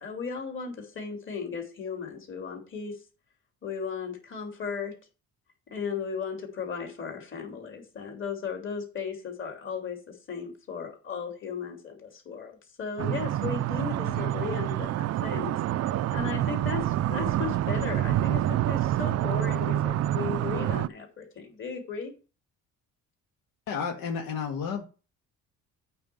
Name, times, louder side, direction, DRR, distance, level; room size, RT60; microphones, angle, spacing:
voice 1, 0.0-3.0 3.6-5.0 5.7-15.6 16.1-22.1, left 6 dB, 40° left, 2 dB, 3.2 m, -36 dB
sound 1, 13.0-20.9, right 13 dB, 55° right, 0.4 m, -27 dB
voice 2, 23.7-24.8, left 6 dB, 80° left, 2 dB, 1.7 m, -32 dB
8.7 x 4.4 x 7.0 m, 0.33 s
cardioid pair, 140°, 32 cm